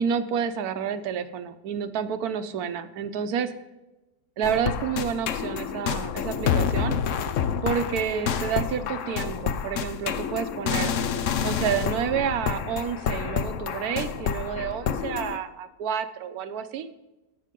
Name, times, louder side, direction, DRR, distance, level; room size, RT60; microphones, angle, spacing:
voice 1, 0.0-3.5 4.4-7.0 7.6-10.9 11.4-16.9, right 7 dB, 65° right, 10 dB, 1.2 m, -29 dB
sound 1, 4.4-15.4, left 7 dB, 60° left, 0.9 m, -28 dB
17.5 x 6.2 x 3.7 m, 1.0 s
omnidirectional pair, 1.8 m